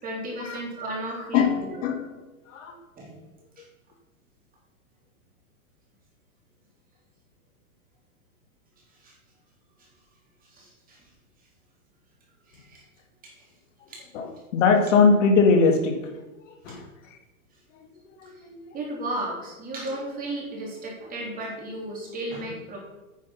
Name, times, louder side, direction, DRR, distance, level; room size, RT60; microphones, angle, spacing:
voice 1, 0.0-1.8 3.0-3.1 3.6-3.7 9.0-9.1 9.8-9.9 10.5-11.0 12.5-12.8 13.2-13.4 13.9-14.0 16.7-16.8 18.7-22.8, right 1 dB, 20° right, -2 dB, 3.4 m, -34 dB
voice 2, 1.3-2.0 2.5-2.8 14.1-14.3 14.5-16.2 16.7-16.8 18.2-18.6, left 4 dB, 55° left, 4 dB, 2.0 m, -21 dB
9.5 x 7.5 x 5.8 m, 1.1 s
hypercardioid pair, 140°, 44 cm